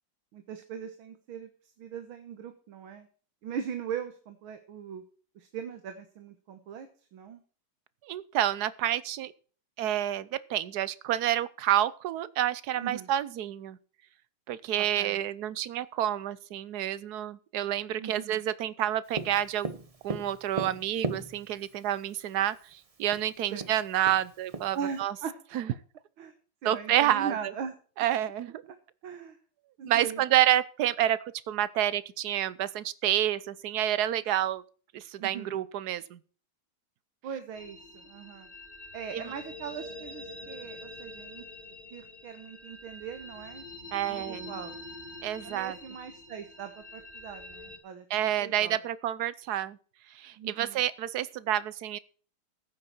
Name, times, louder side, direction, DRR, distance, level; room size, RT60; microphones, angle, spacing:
voice 1, 0.3-1.5 1.8-3.1 3.4-5.0 5.4-7.4 12.8-13.1 14.8-15.1 18.0-18.4 23.5-23.7 24.7-25.3 26.2-26.3 26.6-27.7 29.0-29.4 29.8-30.2 35.2-35.6 37.2-37.8 38.0-38.5 38.9-41.4 41.9-43.6 44.1-44.8 45.4-48.8 50.4-50.8, right 7 dB, 85° right, 8 dB, 2.0 m, -40 dB
voice 2, 8.0-9.3 9.8-13.8 14.5-19.7 20.0-25.1 25.5-25.7 26.6-27.3 28.0-28.6 29.9-31.2 31.5-34.6 34.9-36.2 39.1-39.3 43.9-44.5 45.2-45.8 48.1-49.8 50.1-52.0, right 12 dB, 65° right, 17 dB, 1.1 m, -29 dB
Tap, 19.1-21.7 22.7-22.8 23.1-23.2 23.6-25.0, right 3 dB, 30° right, 0.6 m, -36 dB
sound 1, 37.5-47.8, left 1 dB, 20° left, 2.2 m, -45 dB
15.0 x 8.6 x 4.4 m, 0.41 s
omnidirectional pair, 2.2 m